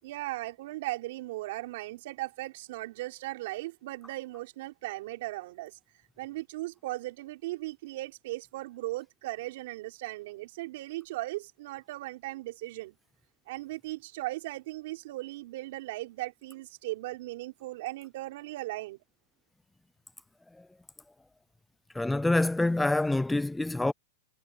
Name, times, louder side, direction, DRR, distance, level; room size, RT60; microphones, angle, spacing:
voice 1, 0.0-5.8 6.2-12.9 13.5-19.0, right 18 dB, 60° right, 5.1 m, -37 dB
voice 2, 21.9-23.9, left 2 dB, 5° left, 0.4 m, -26 dB
hypercardioid pair, 140°, 0 cm